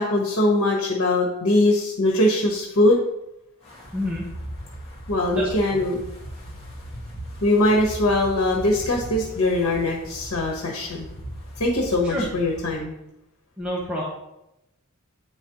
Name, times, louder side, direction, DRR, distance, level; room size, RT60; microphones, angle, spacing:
voice 1, 0.0-3.0 5.1-6.0 7.4-11.1 11.6-13.0, left 1 dB, 85° left, 0 dB, 1.1 m, -21 dB
Wind, 3.6-12.8, equal, 25° left, 1.8 m, -39 dB
voice 2, 3.9-4.3 5.3-5.8 12.0-12.3 13.6-14.0, left 1 dB, 5° right, -5 dB, 0.9 m, -28 dB
8.6 x 4.9 x 2.9 m, 0.87 s
head